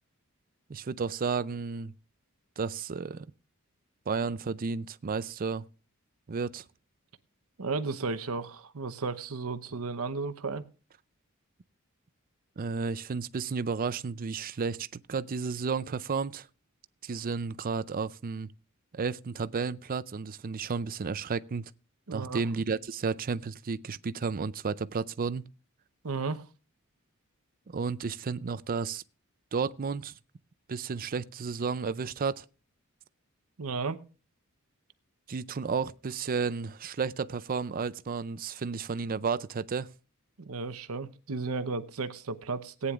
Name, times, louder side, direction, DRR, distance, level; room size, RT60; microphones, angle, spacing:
voice 1, 0.7-1.9 2.6-3.3 4.1-5.6 6.3-6.6 12.6-16.5 17.0-18.5 18.9-21.7 22.1-25.5 27.7-29.0 29.5-30.2 30.7-32.4 35.3-39.9, right 5 dB, 40° right, 0.5 m, -32 dB
voice 2, 7.6-10.7 22.1-22.4 26.0-26.4 33.6-34.0 40.4-42.9, right 4 dB, 75° right, 0.9 m, -34 dB
18.5 x 9.6 x 2.4 m
head